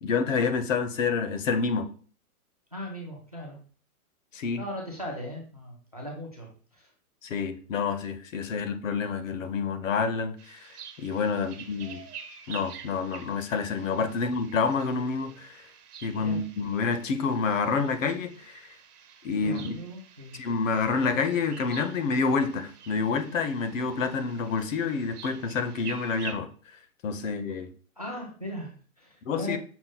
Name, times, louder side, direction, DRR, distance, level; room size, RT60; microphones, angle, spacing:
voice 1, 0.0-1.9 4.3-4.6 7.2-12.0 12.5-15.7 16.0-18.7 19.2-19.7 20.3-26.5 27.0-27.7 29.3-29.6, left 5 dB, 60° left, 0.6 m, -28 dB
voice 2, 2.7-3.6 4.6-6.9 16.1-16.4 19.4-20.4 28.0-29.6, equal, 30° right, 0.4 m, -38 dB
sound 1, 10.4-26.3, right 7 dB, 80° right, 1.0 m, -48 dB
5.8 x 2.1 x 3.9 m
hypercardioid pair, 175°, 45 cm